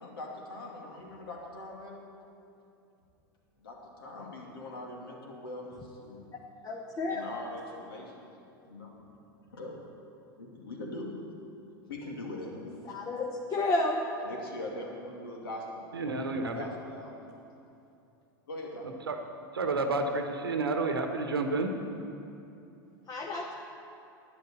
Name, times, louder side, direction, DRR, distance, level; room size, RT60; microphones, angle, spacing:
voice 1, 0.0-2.1 3.6-6.2 7.1-8.3 8.6-9.1 9.3-9.8 10.4-11.1 11.9-13.0 14.2-17.2 18.5-18.9, left 1 dB, 75° left, -1 dB, 2.5 m, -42 dB
voice 2, 6.6-7.2 12.9-13.2 13.5-14.0 23.1-23.5, left 2 dB, 30° left, 0 dB, 1.2 m, -30 dB
voice 3, 15.9-16.7 19.1-19.2 19.5-21.7, right 3 dB, 85° right, 5 dB, 1.2 m, -30 dB
11.5 x 9.5 x 7.0 m, 2.7 s
hypercardioid pair, 90°, 12 cm